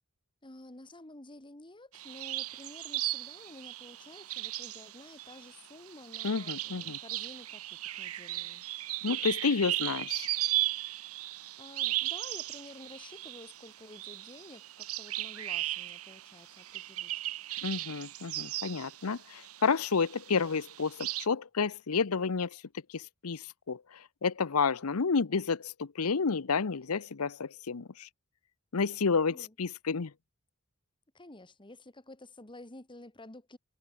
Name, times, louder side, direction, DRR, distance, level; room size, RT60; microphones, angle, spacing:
voice 1, 0.4-7.6 7.9-8.6 11.3-17.2 29.3-29.5 31.1-33.6, left 2 dB, 25° left, 2.1 m, -51 dB
sound 1, 1.9-19.7 20.0-21.3, right 16 dB, 80° right, 1.2 m, -36 dB
voice 2, 6.2-7.0 9.0-10.3 17.6-22.6 22.9-28.1 28.7-30.1, left 5 dB, 85° left, 0.8 m, -30 dB
head